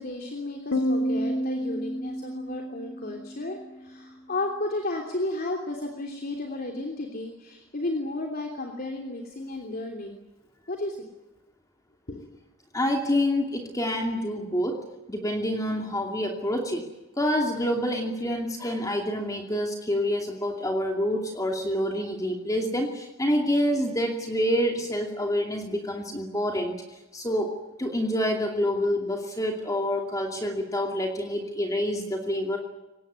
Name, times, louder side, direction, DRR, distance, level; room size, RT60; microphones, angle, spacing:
voice 1, 0.0-10.2 10.7-11.1 12.1-12.4, left 2 dB, 45° left, 2 dB, 3.2 m, -33 dB
Piano, 0.7-4.1, equal, 85° left, 2.3 m, -30 dB
voice 2, 12.7-16.8 17.2-26.7 27.1-32.6, equal, 15° left, 2 dB, 2.7 m, -27 dB
24.0 x 19.5 x 9.7 m, 1.0 s
head